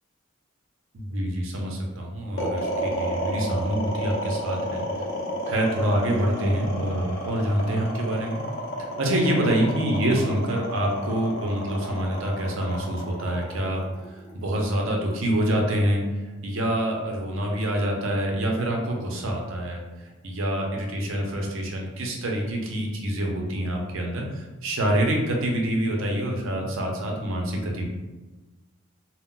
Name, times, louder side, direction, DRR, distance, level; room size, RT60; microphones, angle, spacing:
voice 1, 0.9-4.8 5.5-8.4 8.8-13.8 14.3-16.0 16.4-19.8 20.2-27.8, right 1 dB, 65° right, 0 dB, 0.6 m, -26 dB
sound 1, 2.4-14.6, equal, 60° left, 0.6 m, -31 dB
2.2 x 2.1 x 3.7 m, 1.2 s
head